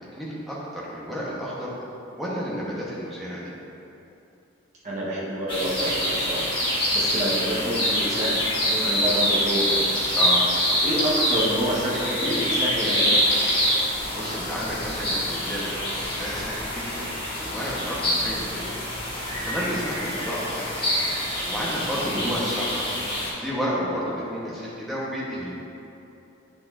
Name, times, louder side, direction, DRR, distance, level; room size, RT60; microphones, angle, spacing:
voice 1, 0.1-3.5 10.1-10.4 14.1-15.9 16.2-17.1 17.4-19.1 19.4-20.8 21.4-23.0 23.3-25.5, equal, ahead, -8 dB, 1.1 m, -31 dB
voice 2, 4.8-6.5 6.9-8.4 8.7-9.9 10.8-13.2 22.0-22.4, equal, 35° right, -8 dB, 1.2 m, -28 dB
sound 1, 5.5-23.3, equal, 25° left, 1.3 m, -25 dB
8.6 x 6.2 x 2.7 m, 2.8 s
head